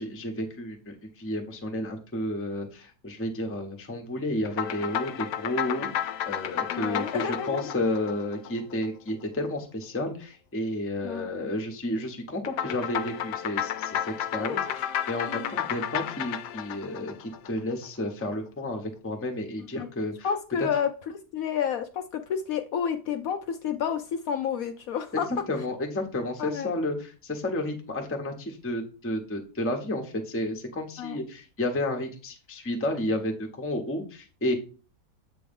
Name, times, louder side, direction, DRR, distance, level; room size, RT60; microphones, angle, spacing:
voice 1, 0.0-20.3 20.6-20.7 25.1-25.2 25.5-34.5, left 1 dB, 15° left, 3 dB, 0.6 m, -31 dB
sound 1, 4.5-9.1 12.5-17.9, left 10 dB, 85° left, 1.2 m, -32 dB
voice 2, 6.7-7.7 11.0-11.3 14.4-14.7 15.3-15.5 19.8-19.9 20.2-20.9 21.3-25.3 26.4-26.7 31.0-31.2, left 8 dB, 70° left, 7 dB, 0.9 m, -30 dB
7.7 x 3.1 x 5.2 m, 0.36 s
omnidirectional pair, 1.8 m